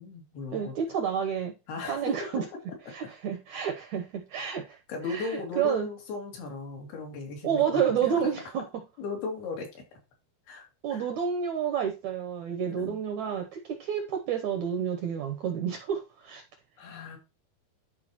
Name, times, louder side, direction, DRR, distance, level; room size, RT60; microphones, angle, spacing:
voice 1, 0.0-0.7 1.7-2.1 4.9-8.1 9.0-10.0 10.5-11.1 12.6-13.0 16.8-17.2, left 3 dB, 75° left, 4.2 m, -37 dB
voice 2, 0.5-1.5 1.9-2.4 2.9-4.8 5.1-5.9 7.4-8.8 10.8-16.4, right 8 dB, 75° right, 1.7 m, -30 dB
12.0 x 4.8 x 3.0 m
omnidirectional pair, 4.4 m